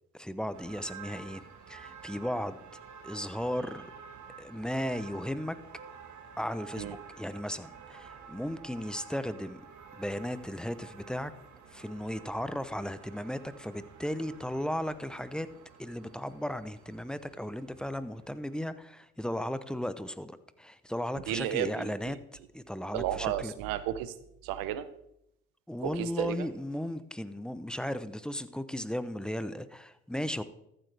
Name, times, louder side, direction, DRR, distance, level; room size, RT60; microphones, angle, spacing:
voice 1, 0.1-2.6 3.0-3.9 4.4-5.6 6.4-9.6 9.9-11.3 11.7-15.5 15.8-22.2 22.5-23.5 25.7-30.4, equal, ahead, 13 dB, 0.7 m, -36 dB
sound 1, 0.5-18.7, right 6 dB, 60° right, 1.6 m, -51 dB
voice 2, 21.3-21.9 22.9-24.1 24.4-24.9 25.8-26.5, right 12 dB, 90° right, 14 dB, 0.7 m, -33 dB
14.0 x 8.1 x 3.4 m, 0.81 s
supercardioid pair, 65°, 33 cm